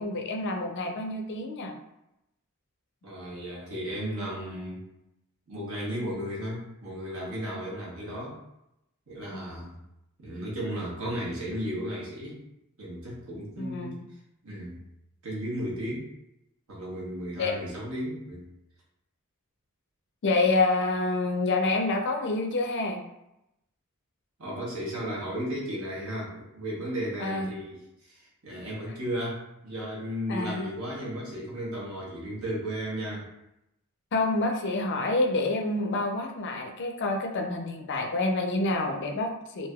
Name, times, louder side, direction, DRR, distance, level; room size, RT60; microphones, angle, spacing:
voice 1, 0.0-1.7 9.3-9.4 13.6-13.9 17.4-17.5 20.2-23.0 27.2-27.5 30.3-30.7 34.1-39.7, left 2 dB, 55° left, 3 dB, 0.4 m, -27 dB
voice 2, 3.0-4.8 5.5-8.4 9.1-9.8 10.2-12.4 12.8-14.0 14.4-14.8 15.2-16.1 16.7-18.5 24.4-33.3, equal, 70° right, -5 dB, 1.1 m, -34 dB
3.2 x 2.6 x 2.3 m, 0.85 s
head